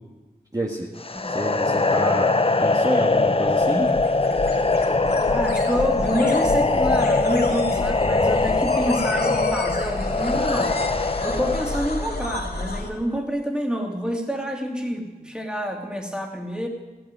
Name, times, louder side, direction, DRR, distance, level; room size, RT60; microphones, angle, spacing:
voice 1, 0.5-0.9 1.3-2.3 2.6-3.9, right 1 dB, 20° right, -2 dB, 1.6 m, -28 dB
sound 1, 1.0-12.1, left 3 dB, 35° left, 0.7 m, -22 dB
sound 2, 3.2-12.9, left 2 dB, 75° left, 2.4 m, -31 dB
voice 2, 5.3-10.8 11.2-16.7, equal, 5° right, 1 dB, 2.7 m, -28 dB
15.5 x 8.9 x 9.7 m, 1.2 s
wide cardioid pair, 65°, 16 cm